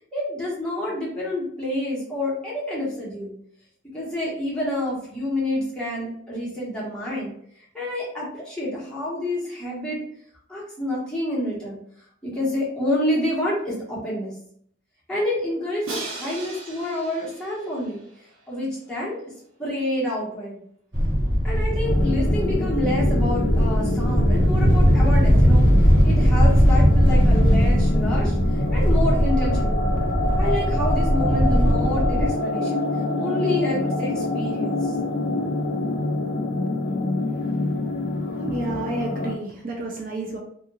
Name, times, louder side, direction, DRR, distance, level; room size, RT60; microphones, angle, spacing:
voice 1, 0.1-3.3 3.9-7.3 7.7-10.0 10.5-11.8 12.2-14.3 15.1-18.0 18.5-19.2 19.6-20.6 21.4-25.7 26.0-29.8 30.4-32.8 33.2-34.9, left 1 dB, 5° left, -7 dB, 1.0 m, -28 dB
Crash cymbal, 15.8-18.8, right 2 dB, 85° right, 0.7 m, -37 dB
sound 1, 20.9-32.3, equal, 25° right, 1.5 m, -19 dB
sound 2, 21.8-39.3, left 2 dB, 45° left, 0.3 m, -27 dB
voice 2, 38.4-40.4, right 2 dB, 40° right, -1 dB, 0.4 m, -30 dB
2.7 x 2.4 x 2.8 m, 0.66 s
head